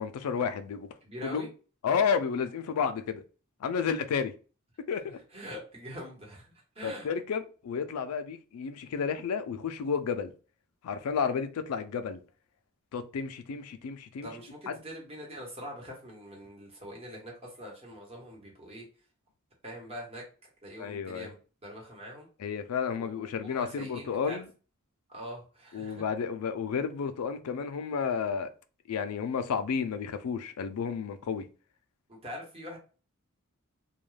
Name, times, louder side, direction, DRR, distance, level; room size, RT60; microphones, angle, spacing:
voice 1, 0.0-0.9 1.2-1.5 1.8-3.2 3.6-4.3 4.9-5.2 6.8-10.3 10.8-12.2 12.9-14.3 14.7-14.8 20.8-21.3 22.4-24.5 25.7-28.5 28.9-31.5, left 6 dB, 85° left, 0.4 m, -31 dB
voice 2, 1.0-1.5 5.3-7.1 14.2-18.8 19.6-21.3 21.6-22.3 23.0-24.4 25.1-26.0 32.1-32.8, equal, 30° right, 1.0 m, -43 dB
2.3 x 2.2 x 3.2 m
head